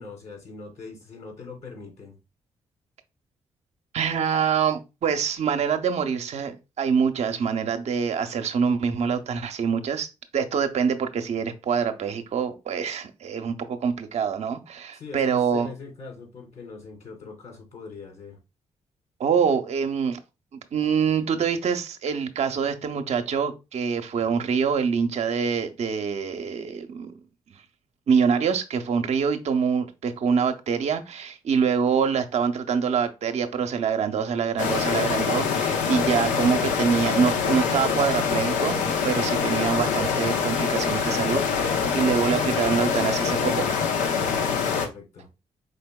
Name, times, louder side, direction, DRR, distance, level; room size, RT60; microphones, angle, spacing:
voice 1, 0.0-2.2 14.9-18.4 44.4-45.3, left 4 dB, 65° left, 2.4 m, -42 dB
voice 2, 3.9-10.1 10.3-15.7 19.2-20.2 20.7-27.1 28.1-43.7, right 6 dB, 60° right, 0.6 m, -25 dB
sound 1, 34.6-44.9, left 6 dB, 85° left, 0.6 m, -25 dB
5.1 x 3.4 x 2.2 m
supercardioid pair, 50°, 13 cm